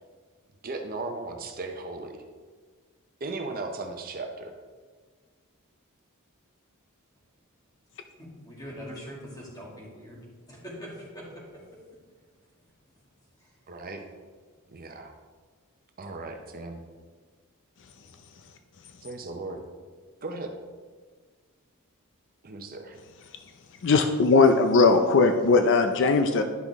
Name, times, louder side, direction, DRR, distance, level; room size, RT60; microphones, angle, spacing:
voice 1, 0.6-2.2 3.2-4.5 13.7-14.0 14.7-15.1 16.0-16.8 19.0-19.6 20.2-20.5 22.4-23.0, right 3 dB, 40° right, 4 dB, 0.7 m, -36 dB
voice 2, 8.2-10.2 10.5-11.6 13.4-13.5, equal, 15° left, -4 dB, 2.2 m, -42 dB
voice 3, 23.8-26.4, left 4 dB, 55° left, 7 dB, 0.5 m, -19 dB
10.5 x 5.9 x 3.6 m, 1.5 s
head